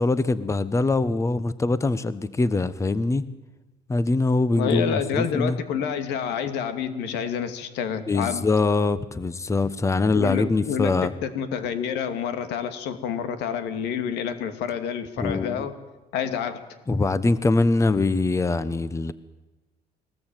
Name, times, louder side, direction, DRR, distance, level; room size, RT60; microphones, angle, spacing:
voice 1, 0.0-3.2 3.9-5.6 8.1-11.1 15.2-15.7 16.9-19.1, left 3 dB, 15° left, 15 dB, 1.0 m, -23 dB
voice 2, 4.5-8.5 10.1-15.8 16.1-16.6, left 7 dB, 85° left, 9 dB, 2.5 m, -28 dB
22.0 x 19.0 x 9.1 m, 1.1 s
cardioid pair, 110°, 17 cm